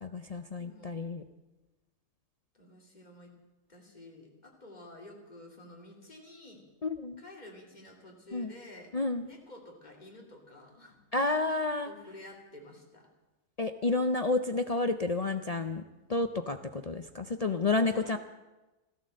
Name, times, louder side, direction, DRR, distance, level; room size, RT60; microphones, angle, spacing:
voice 1, 0.0-1.2 6.8-7.2 8.3-8.5 8.9-9.3 11.1-11.9 13.6-15.8 16.1-18.2, left 3 dB, 65° left, 8 dB, 0.3 m, -30 dB
voice 2, 0.6-1.0 2.5-3.3 3.7-6.6 7.2-8.9 9.2-11.0 11.8-13.1 17.7-18.2, left 1 dB, 25° left, 1 dB, 2.9 m, -51 dB
14.5 x 13.0 x 7.5 m, 1.1 s
omnidirectional pair, 1.6 m